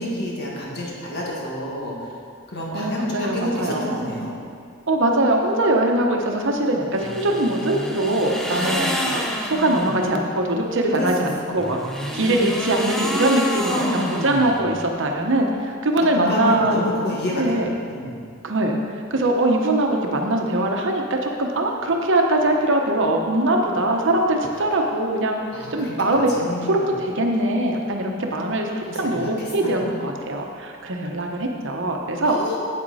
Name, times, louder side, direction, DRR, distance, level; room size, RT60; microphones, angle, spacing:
voice 1, 0.0-2.1 2.5-4.3 8.5-9.0 9.4-10.1 11.0-11.1 11.4-11.6 12.0-12.6 13.7-14.3 16.1-18.2 25.5-27.0 28.9-29.9 32.3-32.6, left 1 dB, 55° left, -4 dB, 1.8 m, -29 dB
voice 2, 2.7-4.0 4.9-9.2 9.5-17.7 18.4-18.8 19.1-25.4 25.7-26.3 26.7-32.3, right 1 dB, 65° right, 2 dB, 1.0 m, -22 dB
sound 1, 6.9-10.1 11.5-14.9, equal, ahead, 0.7 m, -29 dB
8.6 x 7.8 x 4.2 m, 2.3 s
head